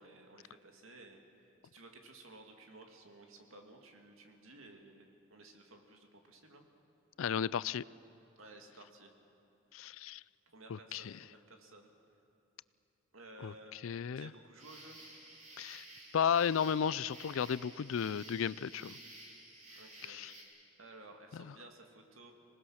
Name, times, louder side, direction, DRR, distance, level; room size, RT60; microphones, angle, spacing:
voice 1, 0.0-6.6 8.4-9.2 10.5-11.9 13.1-13.9 14.2-15.2 19.7-20.2 20.8-22.3, right 2 dB, 80° right, 3 dB, 2.5 m, -55 dB
voice 2, 7.2-7.8 9.7-10.2 10.7-11.1 13.4-14.3 15.6-15.9 16.1-19.0 20.1-20.3 21.3-21.5, left 7 dB, 80° left, 20 dB, 0.4 m, -34 dB
sound 1, 14.6-20.4, right 1 dB, 35° right, 3.5 m, -53 dB
26.0 x 19.0 x 6.5 m, 3.0 s
head